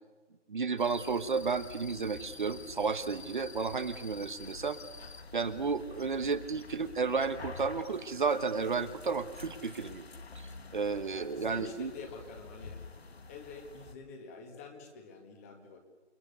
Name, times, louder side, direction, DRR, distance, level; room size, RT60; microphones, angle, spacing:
voice 1, 0.5-4.8 5.3-10.0 10.7-11.9, right 5 dB, 45° right, 10 dB, 1.3 m, -32 dB
sound 1, 0.8-13.9, left 4 dB, 60° left, 2.2 m, -48 dB
voice 2, 11.1-12.8 13.3-15.8, left 3 dB, 15° left, 5 dB, 1.9 m, -47 dB
29.0 x 21.0 x 6.9 m, 1.2 s
figure-of-eight pair, 165°, 35 cm